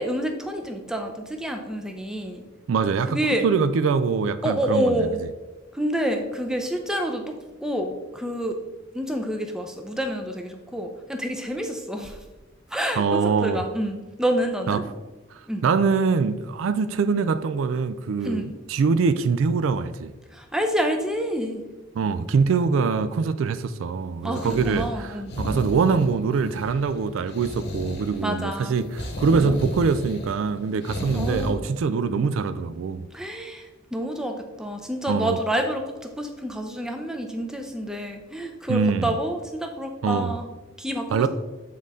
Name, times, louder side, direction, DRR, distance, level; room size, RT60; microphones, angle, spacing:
voice 1, 0.0-2.4 3.1-3.5 4.4-5.2 5.7-8.6 8.9-12.2 12.7-14.8 15.5-15.6 18.2-18.5 20.3-21.6 24.2-25.3 28.2-28.8 31.1-31.6 33.1-40.5 40.8-41.3, equal, 5° right, 0.5 m, -28 dB
voice 2, 2.7-5.1 13.0-13.6 14.7-14.9 15.6-20.1 22.0-33.1 35.1-35.4 38.7-39.1 40.0-40.3 41.1-41.3, right 5 dB, 75° right, 0.3 m, -23 dB
sound 1, 24.3-31.5, left 1 dB, 55° left, 1.0 m, -33 dB
7.5 x 3.9 x 3.6 m
head